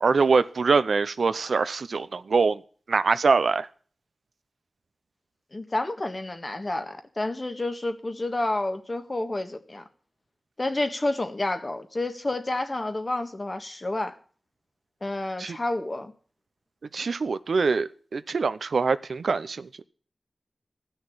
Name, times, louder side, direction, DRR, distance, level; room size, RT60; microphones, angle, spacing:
voice 1, 0.0-2.6 2.9-3.7 15.4-15.6 16.9-19.7, right 4 dB, 85° right, 0.6 m, -24 dB
voice 2, 5.5-9.8 10.6-14.2 15.0-16.1, left 2 dB, 40° left, 1.6 m, -29 dB
14.5 x 6.5 x 8.7 m
wide cardioid pair, 55°, 0 cm